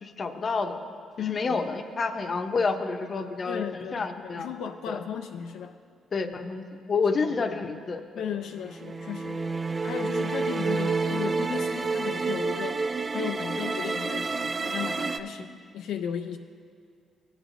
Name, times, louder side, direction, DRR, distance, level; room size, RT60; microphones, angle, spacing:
voice 1, 0.0-0.8 1.2-4.5 4.9-5.0 6.1-8.0, left 4 dB, 40° left, 7 dB, 0.7 m, -29 dB
voice 2, 1.2-1.7 3.5-5.8 7.5-7.6 8.1-9.4 9.8-12.8 13.1-16.4, left 8 dB, 85° left, 6 dB, 0.3 m, -35 dB
sound 1, 8.6-15.2, right 4 dB, 30° right, 0.4 m, -29 dB
16.0 x 8.1 x 2.6 m, 2.2 s
cardioid pair, 90°, 0 cm